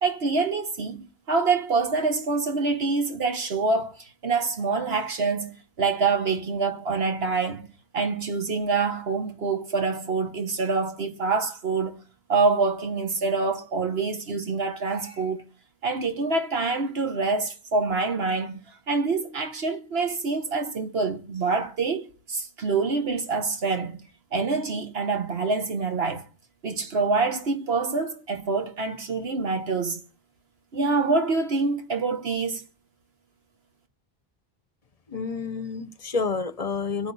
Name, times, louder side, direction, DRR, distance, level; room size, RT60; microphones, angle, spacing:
voice 1, 0.0-7.7 7.9-12.0 12.3-15.4 15.8-24.0 24.3-26.2 26.6-30.0 30.7-32.6, right 4 dB, 75° right, 1.5 m, -26 dB
voice 2, 35.1-37.1, left 4 dB, 40° left, 0.8 m, -29 dB
23.5 x 9.2 x 4.1 m
omnidirectional pair, 1.0 m